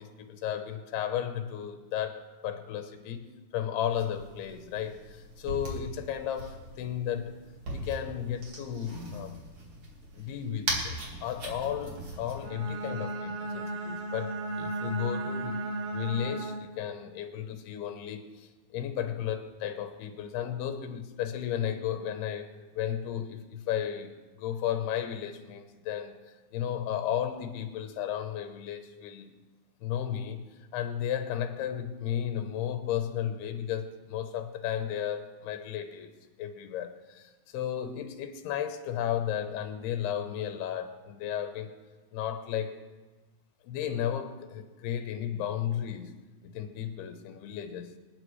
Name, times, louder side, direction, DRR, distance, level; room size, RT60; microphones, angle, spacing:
voice 1, 0.0-7.3 7.7-9.4 10.2-10.9 11.2-15.6 15.9-22.5 22.7-24.1 24.4-26.2 26.5-29.3 29.8-30.5 30.7-36.1 36.4-41.7 42.1-42.8 43.6-46.2 46.4-48.0, left 10 dB, 85° left, 3.0 m, -34 dB
sound 1, 3.9-12.5, right 1 dB, 40° right, 2.3 m, -39 dB
Bowed string instrument, 12.4-16.9, right 2 dB, 80° right, 3.1 m, -35 dB
26.0 x 9.5 x 3.2 m
omnidirectional pair, 4.5 m